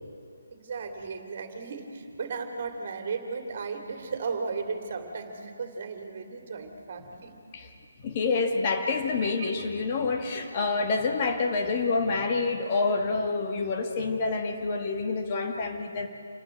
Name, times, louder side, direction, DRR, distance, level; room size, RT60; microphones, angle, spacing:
voice 1, 0.5-7.3 9.2-9.6, right 4 dB, 45° right, 5 dB, 2.6 m, -35 dB
voice 2, 8.0-16.1, left 4 dB, 35° left, 3 dB, 1.8 m, -27 dB
28.0 x 12.0 x 8.9 m, 2.5 s
figure-of-eight pair, 150°, 0 cm